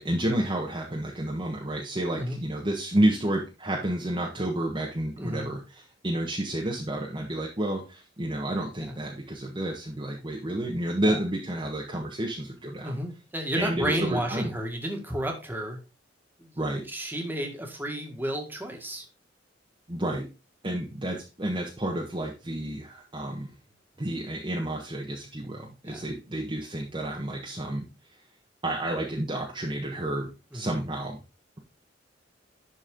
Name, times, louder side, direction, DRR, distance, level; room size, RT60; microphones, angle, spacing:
voice 1, 0.0-13.0 13.6-14.5 16.6-16.8 19.9-20.3 20.6-23.5 24.0-27.9 28.6-31.2, right 1 dB, 25° right, -1 dB, 1.4 m, -30 dB
voice 2, 5.2-5.5 8.8-8.9 11.1-11.2 12.8-15.8 16.4-16.5 16.9-19.0 25.8-26.1 30.5-30.6, equal, 10° right, 2 dB, 2.0 m, -32 dB
11.5 x 4.6 x 3.8 m, 0.29 s
head